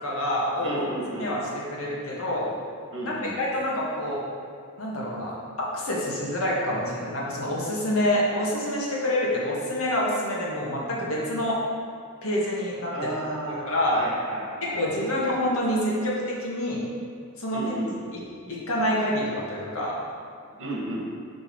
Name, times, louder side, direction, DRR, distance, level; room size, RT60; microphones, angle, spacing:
voice 1, 0.0-0.8 1.2-1.4 1.7-2.5 3.0-4.2 4.8-5.3 5.7-11.6 12.2-12.9 13.7-14.0 14.6-16.8 17.4-17.6 18.1-18.2 18.5-19.9, left 1 dB, 65° left, -5 dB, 1.7 m, -27 dB
voice 2, 0.6-1.3 2.9-3.4 12.9-15.1 17.5-18.0 20.6-21.0, right 1 dB, 60° right, -4 dB, 1.8 m, -33 dB
6.3 x 5.2 x 4.7 m, 2.3 s
head